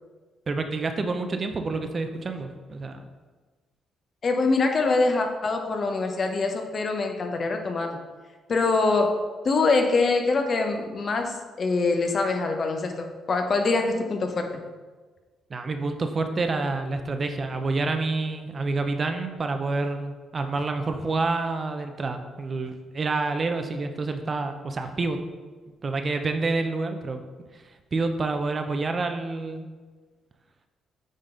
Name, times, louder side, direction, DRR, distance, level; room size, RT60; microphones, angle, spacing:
voice 1, 0.5-3.0 15.5-25.2 25.8-27.2 27.9-29.7, right 3 dB, 40° right, 6 dB, 0.6 m, -28 dB
voice 2, 4.2-8.0 8.5-9.1 9.4-14.5, left 3 dB, 45° left, 4 dB, 1.0 m, -24 dB
9.0 x 4.0 x 3.8 m, 1.3 s
cardioid pair, 90°, 0 cm